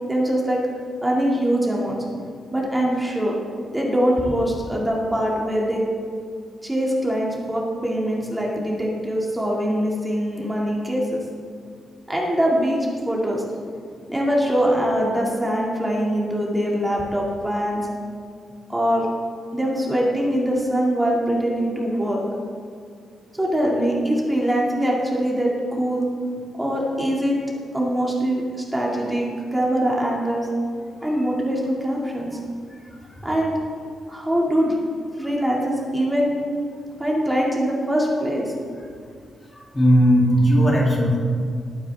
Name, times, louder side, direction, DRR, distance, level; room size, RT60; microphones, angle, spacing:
voice 1, 0.1-0.6 1.0-2.2 2.5-3.3 3.7-5.8 6.6-11.2 12.1-12.8 13.0-13.4 14.1-17.8 18.7-19.1 19.5-22.2 23.3-26.1 26.6-27.4 27.7-30.5 31.0-32.4 33.2-33.6 34.1-34.7 35.2-36.4 37.0-38.5, equal, 5° right, -3 dB, 2.2 m, -23 dB
voice 2, 39.7-41.2, equal, 15° left, -3 dB, 2.7 m, -16 dB
20.5 x 9.2 x 3.5 m, 2.2 s
wide cardioid pair, 155°, 0 cm